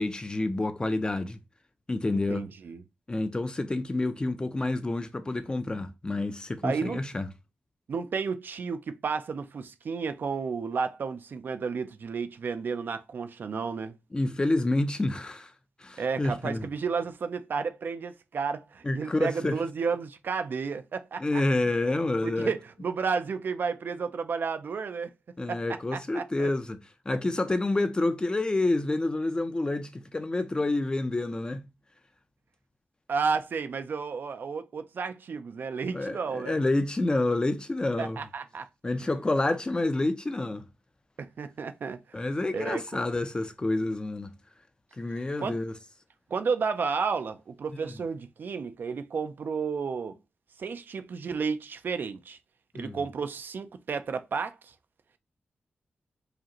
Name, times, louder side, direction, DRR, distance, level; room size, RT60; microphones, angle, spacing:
voice 1, 0.0-1.4 1.9-2.4 3.1-7.3 14.1-15.5 15.8-16.7 18.8-19.6 21.2-22.5 25.4-26.8 27.1-31.7 35.9-38.2 38.8-40.6 42.1-44.3 45.0-45.7 47.8-47.9 52.7-53.0, left 2 dB, 25° left, 0.5 m, -28 dB
voice 2, 2.1-2.8 6.6-7.0 7.9-14.0 16.0-21.4 22.2-25.1 25.5-25.6 25.9-26.5 33.1-36.6 38.0-38.7 39.0-39.1 41.2-42.2 42.5-43.0 45.1-45.6 46.3-50.2 50.6-52.4 52.7-54.7, right 5 dB, 60° right, 0.4 m, -32 dB
4.9 x 2.4 x 2.9 m
wide cardioid pair, 95°, 4 cm